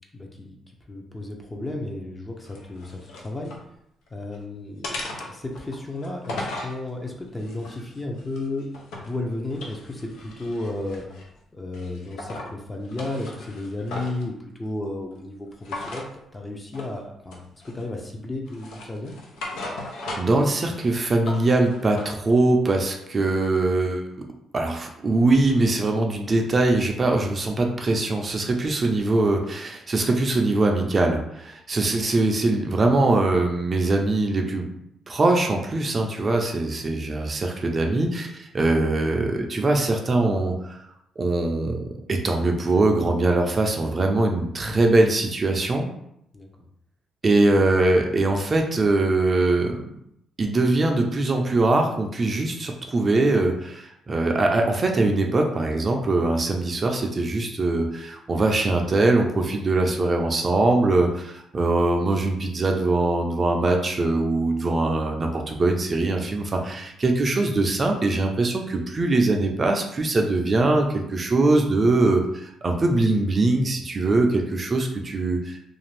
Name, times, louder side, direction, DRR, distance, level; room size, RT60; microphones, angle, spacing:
voice 1, 0.1-0.6 0.9-3.5 4.1-8.7 8.9-11.0 11.5-14.3 14.6-16.1 16.3-19.1 31.7-31.9 36.8-36.9 46.3-46.5, left 2 dB, 20° left, 1 dB, 0.6 m, -33 dB
sound 1, 2.5-3.6 4.1-4.4 4.8-6.8 7.4-9.2 9.5-11.3 11.7-12.5 12.8-14.3 15.6-16.1 16.7-17.0 17.3-18.0 18.5-20.5 20.8-22.1, left 2 dB, 85° left, 0.5 m, -37 dB
voice 2, 20.2-24.0 24.5-34.7 35.1-40.8 41.2-45.9 47.2-49.8 50.4-75.6, right 2 dB, 35° right, 2 dB, 0.4 m, -22 dB
2.5 x 2.4 x 3.2 m, 0.77 s
cardioid pair, 90°, 0 cm